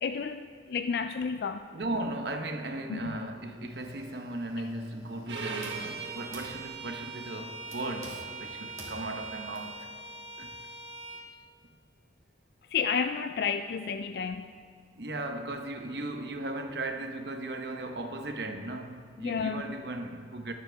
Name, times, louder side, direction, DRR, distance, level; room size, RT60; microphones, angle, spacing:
voice 1, 0.0-1.7 2.9-3.1 12.7-14.5 19.2-19.6, left 6 dB, 60° left, 0.3 m, -31 dB
voice 2, 1.7-9.9 10.4-10.6 14.9-20.5, right 2 dB, 65° right, 0.9 m, -37 dB
sound 1, 3.3-9.7, equal, 20° right, 2.2 m, -49 dB
Bowed string instrument, 5.3-11.2, right 4 dB, 90° right, 1.4 m, -41 dB
21.5 x 7.4 x 3.5 m
head